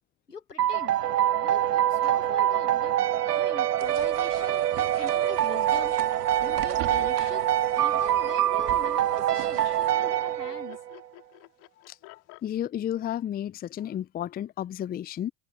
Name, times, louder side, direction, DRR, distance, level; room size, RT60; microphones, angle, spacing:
voice 1, 0.3-1.0 1.4-3.0 3.3-6.0 6.4-10.8, left 5 dB, 90° left, 2.2 m, -43 dB
sound 1, 0.6-11.0, right 12 dB, 80° right, 0.6 m, -25 dB
sound 2, 3.8-9.9, right 17 dB, 45° right, 2.8 m, -43 dB
Laughter, 4.2-12.5, left 25 dB, 50° left, 4.5 m, -49 dB
voice 2, 12.4-15.3, left 11 dB, 20° left, 0.6 m, -32 dB
figure-of-eight pair, 80°, 46 cm